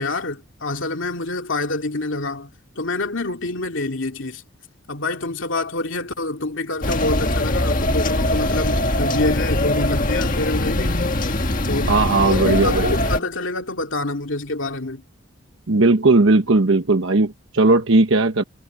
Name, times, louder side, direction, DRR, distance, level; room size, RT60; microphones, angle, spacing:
voice 1, 0.0-2.5 2.8-4.4 4.9-15.0, left 2 dB, 65° left, 2.5 m, -27 dB
sound 1, 6.8-13.2, left 1 dB, 40° left, 1.8 m, -22 dB
voice 2, 11.9-13.0 15.7-18.4, right 3 dB, 70° right, 1.1 m, -17 dB
head